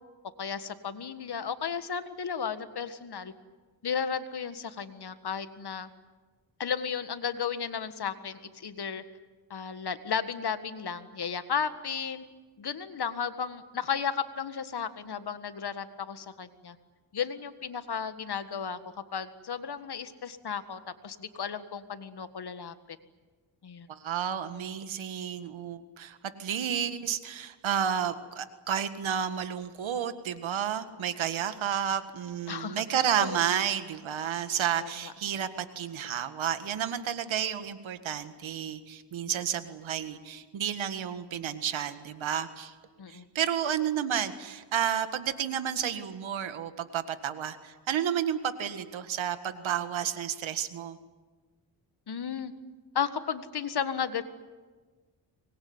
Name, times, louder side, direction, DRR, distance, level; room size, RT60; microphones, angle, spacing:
voice 1, 0.4-3.3 3.8-5.9 6.6-9.0 9.5-12.2 12.6-16.7 17.1-18.8 19.1-23.0 23.6-23.9 32.5-32.8 33.2-33.4 34.8-35.1 43.0-43.3 52.1-52.5 52.9-54.2, left 7 dB, 55° left, 10 dB, 1.8 m, -34 dB
voice 2, 23.9-42.7 43.1-51.0, right 9 dB, 90° right, 10 dB, 1.8 m, -31 dB
24.5 x 21.0 x 9.7 m, 1.4 s
cardioid pair, 85°, 45 cm